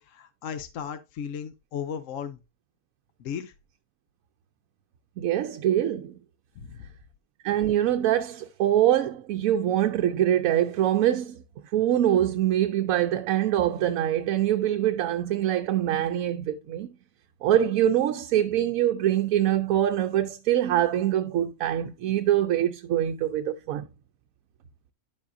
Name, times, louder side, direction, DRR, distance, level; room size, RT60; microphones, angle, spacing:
voice 1, 0.0-2.4 3.2-3.5 6.6-6.8, left 8 dB, 65° left, 1.0 m, -35 dB
voice 2, 5.2-6.2 7.4-11.4 11.7-17.0 17.4-23.9, right 11 dB, 75° right, 1.0 m, -24 dB
10.5 x 7.3 x 2.6 m
omnidirectional pair, 1.5 m